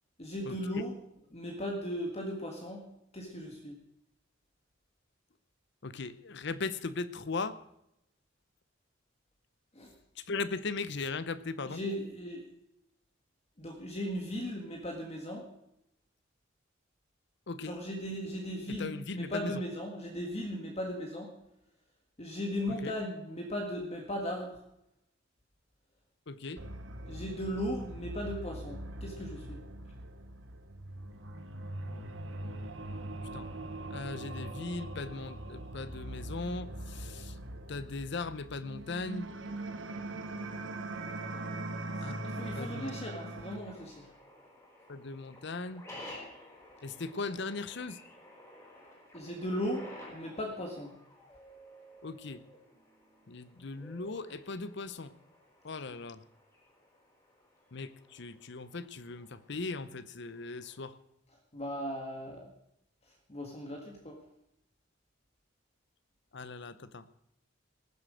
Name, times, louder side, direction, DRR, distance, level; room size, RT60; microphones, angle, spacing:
voice 1, 0.2-1.0 1.3-2.8 3.1-3.8 9.8-9.9 11.7-12.5 13.6-15.5 17.6-21.3 22.2-24.6 27.1-29.6 41.0-41.4 42.2-44.1 49.1-50.9 61.5-62.5 63.3-64.2, equal, 35° left, 1 dB, 1.7 m, -37 dB
voice 2, 5.8-7.6 10.3-11.8 17.5-17.8 18.8-19.5 22.8-23.0 26.3-26.6 31.8-32.1 33.3-33.5 33.9-37.3 37.7-39.3 42.0-42.3 42.5-43.0 44.9-45.8 46.8-48.0 52.0-52.4 53.3-55.1 55.6-56.2 57.7-60.9 66.3-67.1, left 3 dB, 65° left, 14 dB, 0.8 m, -38 dB
sound 1, 26.6-43.6, right 1 dB, 75° right, 1.3 m, -41 dB
sound 2, 41.3-60.9, left 1 dB, 15° left, 4.8 m, -54 dB
19.0 x 7.7 x 6.3 m, 0.81 s
head